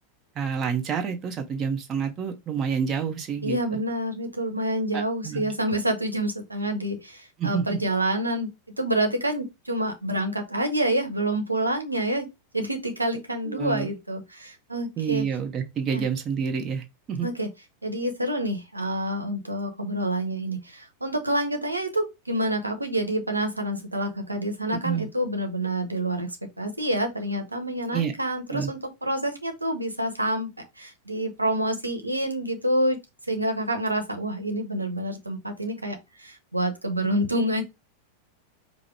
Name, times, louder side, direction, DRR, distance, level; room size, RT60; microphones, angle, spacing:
voice 1, 0.3-3.8 4.9-5.5 7.4-7.8 13.5-13.9 15.0-17.3 24.8-25.1 27.9-28.1 28.5-28.7, right 7 dB, 25° right, 0.9 m, -28 dB
voice 2, 3.4-8.5 8.8-12.3 12.5-15.2 15.9-16.0 17.2-17.5 17.8-30.5 30.8-33.0 33.3-37.6, right 1 dB, 85° right, 0.9 m, -27 dB
5.0 x 2.1 x 4.4 m
figure-of-eight pair, 90°, 0 cm